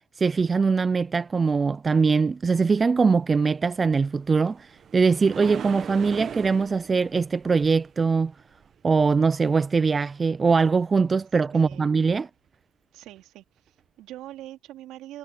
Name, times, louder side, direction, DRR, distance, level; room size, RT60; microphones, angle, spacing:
voice 1, 0.2-8.3 8.8-12.3, right 4 dB, 25° right, 0.4 m, -22 dB
sound 1, 3.9-9.2 13.1-13.2 13.8-13.9, right 8 dB, 45° right, 1.2 m, -40 dB
voice 2, 11.5-11.9 12.9-15.2, right 14 dB, 65° right, 2.9 m, -43 dB
supercardioid pair, 100°, 0 cm